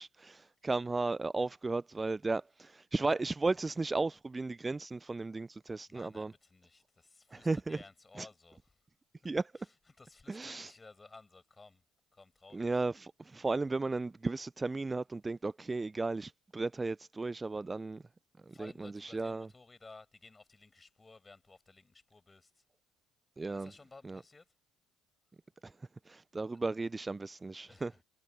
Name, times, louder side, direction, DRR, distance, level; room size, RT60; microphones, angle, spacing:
voice 1, 0.0-6.3 7.3-7.8 8.2-8.3 9.2-9.5 10.3-10.7 12.5-18.0 18.5-19.5 23.4-23.7 24.0-24.2 25.6-25.7 26.1-27.9, right 3 dB, 20° right, 0.6 m, -35 dB
voice 2, 5.9-8.6 9.6-11.8 12.1-12.8 18.5-22.6 23.5-24.5 27.7-27.9, left 3 dB, 20° left, 5.9 m, -56 dB
figure-of-eight pair, 55°, 0 cm